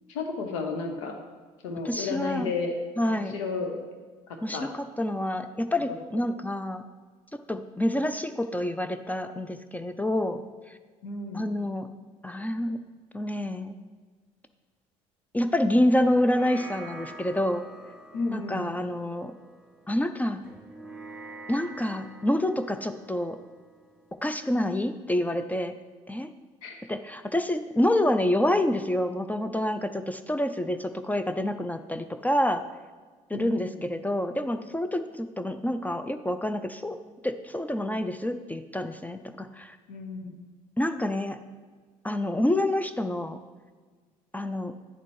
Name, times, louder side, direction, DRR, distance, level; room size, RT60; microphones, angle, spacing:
voice 1, 0.1-1.1 1.6-2.7 3.1-3.8 4.5-4.7 11.0-11.5 18.1-18.7 26.6-26.8 33.3-33.8 39.9-40.4, left 4 dB, 85° left, 4 dB, 0.9 m, -33 dB
voice 2, 1.8-2.5 3.0-3.4 4.4-6.8 7.3-10.5 11.3-11.9 12.2-12.8 13.1-13.8 15.3-17.7 18.3-19.3 19.9-20.4 21.5-23.4 24.2-25.7 26.1-26.3 26.9-32.6 33.3-37.0 37.2-39.8 40.8-41.4 42.0-43.4 44.3-44.7, left 1 dB, 10° left, 9 dB, 0.4 m, -27 dB
sound 1, 16.0-24.7, right 2 dB, 5° right, 1.7 m, -47 dB
10.0 x 4.2 x 3.2 m, 1.5 s
supercardioid pair, 70°, 16 cm